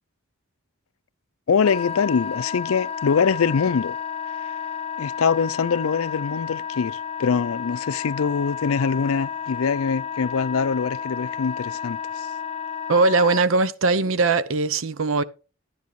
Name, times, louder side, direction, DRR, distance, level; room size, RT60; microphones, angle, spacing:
voice 1, 1.5-4.0 5.0-12.3, left 6 dB, 90° left, 0.5 m, -23 dB
Wind instrument woodwind instrument, 1.6-13.4, left 7 dB, 30° left, 0.8 m, -32 dB
voice 2, 12.9-15.2, right 3 dB, 70° right, 0.7 m, -20 dB
11.5 x 10.5 x 3.2 m
head